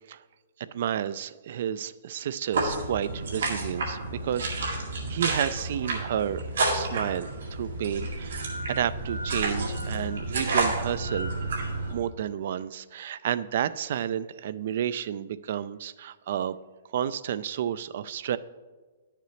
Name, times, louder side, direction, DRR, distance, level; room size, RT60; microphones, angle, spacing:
voice 1, 0.6-4.8 5.1-11.3 11.9-16.5 16.9-18.4, right 10 dB, 60° right, 16 dB, 0.3 m, -31 dB
sound 1, 2.5-11.9, right 2 dB, 85° right, 2.0 m, -30 dB
10.5 x 6.6 x 3.2 m, 1.3 s
hypercardioid pair, 140°, 0 cm